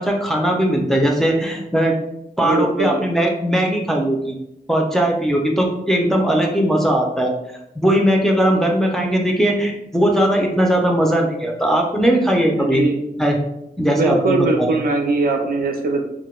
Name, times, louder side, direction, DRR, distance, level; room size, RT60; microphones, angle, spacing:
voice 1, 0.0-2.0 2.4-4.3 4.7-7.3 7.8-12.8 13.2-13.4 13.8-14.7, right 1 dB, ahead, 0 dB, 0.4 m, -19 dB
voice 2, 2.4-3.0 12.5-13.0 13.9-16.0, right 3 dB, 70° right, 2 dB, 0.5 m, -20 dB
2.2 x 2.1 x 3.0 m, 0.82 s
wide cardioid pair, 120°, 16 cm